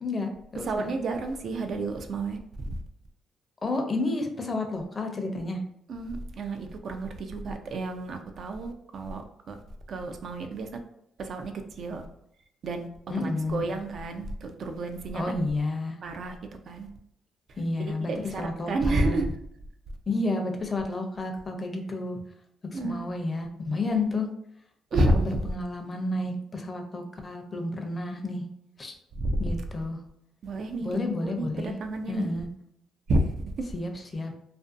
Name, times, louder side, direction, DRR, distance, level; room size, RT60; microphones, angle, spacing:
voice 1, 0.0-0.9 3.6-5.6 13.1-13.8 15.1-16.0 17.6-19.2 20.1-22.2 22.6-24.3 24.9-28.4 28.8-28.9 29.4-30.0 30.8-31.7 32.1-32.5 33.7-34.3, left 2 dB, 30° left, 4 dB, 0.5 m, -31 dB
voice 2, 0.7-2.4 2.6-2.8 5.9-9.2 9.5-9.6 9.9-10.7 11.2-11.5 11.8-12.0 12.6-12.9 13.2-15.4 16.0-16.4 16.7-16.9 18.0-19.3 22.7-23.1 23.9-24.0 24.9-25.4 29.2-29.5 30.4-30.9 31.2-32.3 33.1-33.3 33.6-33.7, right 2 dB, 60° right, 6 dB, 0.3 m, -30 dB
2.5 x 2.2 x 2.4 m, 0.75 s
cardioid pair, 90°, 0 cm